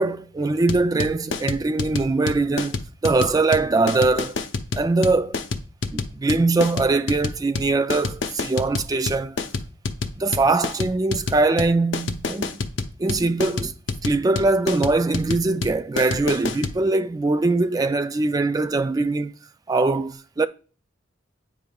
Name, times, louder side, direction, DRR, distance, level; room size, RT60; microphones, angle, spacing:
voice 1, 0.0-2.8 3.0-4.3 4.7-5.4 5.9-9.4 10.2-12.6 13.0-13.7 14.0-19.3 19.7-20.5, right 3 dB, 20° right, 0.3 m, -22 dB
sound 1, 0.7-16.8, left 3 dB, 75° left, 0.7 m, -28 dB
8.5 x 5.2 x 2.3 m
head